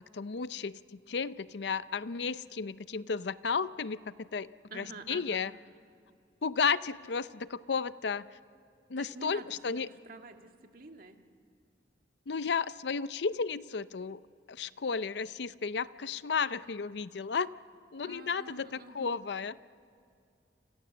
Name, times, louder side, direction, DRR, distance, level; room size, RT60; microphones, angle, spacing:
voice 1, 0.1-5.5 6.4-8.3 8.9-9.9 12.3-14.2 14.5-17.5 17.9-19.6, left 5 dB, 65° left, 16 dB, 0.6 m, -33 dB
voice 2, 4.7-5.5 9.0-11.2 18.0-19.2, right 3 dB, 55° right, 4 dB, 1.8 m, -48 dB
29.5 x 26.5 x 7.0 m, 2.5 s
head